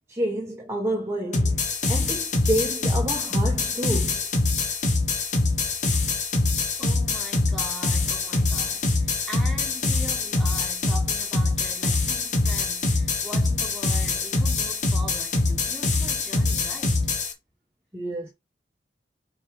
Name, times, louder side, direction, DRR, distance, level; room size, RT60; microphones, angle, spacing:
voice 1, 0.1-4.3 17.9-18.3, right 1 dB, 15° right, 1.1 m, -29 dB
sound 1, 1.3-17.3, left 3 dB, 40° left, 1.3 m, -24 dB
voice 2, 6.8-17.1, right 1 dB, ahead, 1.8 m, -41 dB
5.3 x 4.7 x 4.8 m
head